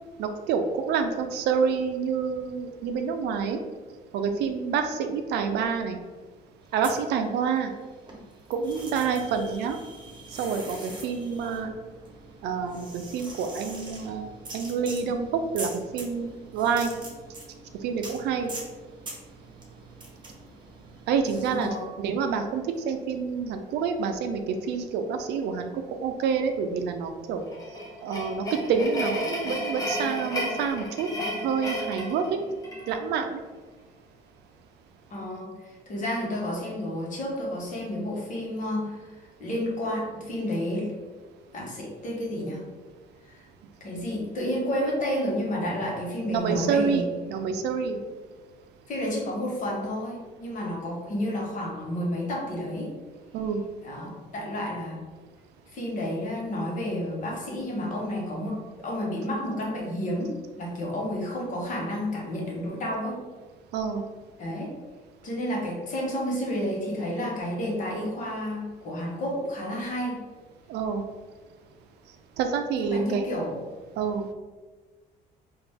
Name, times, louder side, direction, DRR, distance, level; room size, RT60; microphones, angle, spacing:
voice 1, 0.2-3.6 4.1-6.0 6.7-7.7 8.5-9.8 10.4-11.7 12.4-14.3 14.5-15.3 15.5-16.9 17.8-18.5 21.1-25.7 26.0-27.4 28.0-31.1 31.4-32.2 32.9-33.4 46.3-47.0 47.3-48.0 53.3-53.6 63.7-64.0 70.7-71.0 72.4-73.3 74.0-74.3, right 6 dB, 80° right, 6 dB, 0.5 m, -27 dB
sound 1, 6.7-7.8 8.1-21.7, right 2 dB, 25° right, 1.0 m, -43 dB
voice 2, 21.5-21.9 35.1-40.9 41.5-42.7 43.3-43.4 43.8-47.1 48.9-52.9 53.8-55.0 55.7-63.2 64.4-64.8 65.2-70.2 72.7-73.6, equal, 50° left, -2 dB, 1.2 m, -31 dB
sound 2, 27.5-33.0, equal, 20° left, 0.8 m, -32 dB
3.9 x 2.5 x 3.5 m, 1.4 s
cardioid pair, 110°, 17 cm